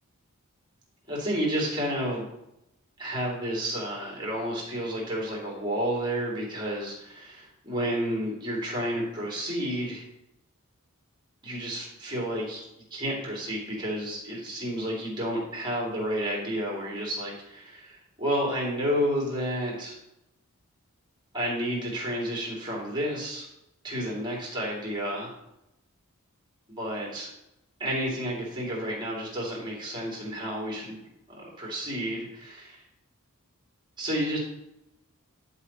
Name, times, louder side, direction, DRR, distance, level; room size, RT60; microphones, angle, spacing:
voice 1, 1.1-2.3 3.0-10.0 11.4-12.6 12.9-20.0 21.3-23.4 23.8-25.3 26.8-27.3 27.8-31.0 31.3-32.8 34.0-34.4, equal, 20° right, -3 dB, 2.6 m, -31 dB
10.5 x 4.2 x 4.1 m, 0.86 s
head